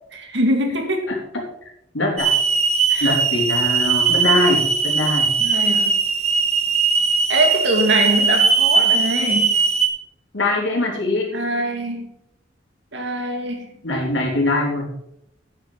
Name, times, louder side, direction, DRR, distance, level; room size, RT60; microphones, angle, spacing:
voice 1, 0.1-1.1 2.9-3.2 5.4-6.0 7.3-9.6 11.3-12.1 12.9-14.3, right 1 dB, 65° right, 3 dB, 2.4 m, -23 dB
voice 2, 1.9-2.3 3.0-5.3 10.3-11.3 13.8-14.9, left 2 dB, 90° left, 0 dB, 3.5 m, -22 dB
Hiss / Alarm, 2.2-9.9, right 5 dB, 35° right, 1.7 m, -19 dB
9.6 x 9.0 x 5.5 m, 0.80 s
head